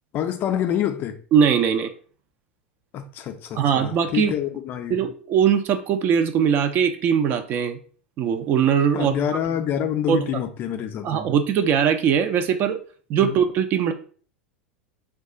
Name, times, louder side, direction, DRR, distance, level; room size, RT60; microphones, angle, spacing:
voice 1, 0.1-1.2 2.9-5.0 8.9-11.2 13.2-13.4, left 9 dB, 35° left, 0.4 m, -27 dB
voice 2, 1.3-1.9 3.5-4.3 4.9-7.8 8.2-9.1 10.1-10.4 11.0-12.8 13.1-13.9, right 7 dB, 35° right, 0.4 m, -21 dB
2.3 x 2.2 x 3.8 m
figure-of-eight pair, 85°, 6 cm